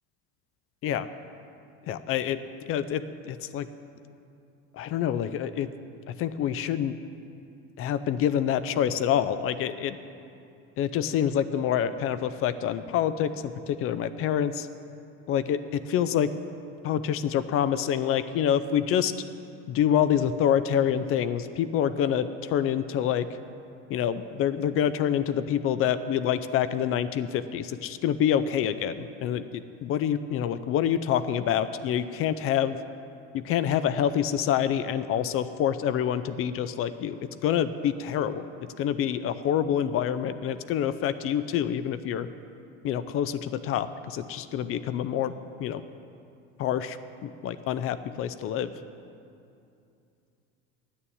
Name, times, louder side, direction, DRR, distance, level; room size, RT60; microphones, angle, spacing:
voice 1, 1.9-2.4 2.7-3.7 4.7-5.7 6.2-7.0 7.8-10.0 10.8-14.7 15.3-16.3 16.8-19.1 19.7-23.3 23.9-32.8 33.3-38.5 38.8-42.3 42.8-45.3 45.6-45.8 46.6-47.0 47.2-48.7, left 9 dB, 50° left, 13 dB, 0.5 m, -27 dB
10.5 x 7.0 x 8.7 m, 2.6 s
cardioid pair, 120°, 30 cm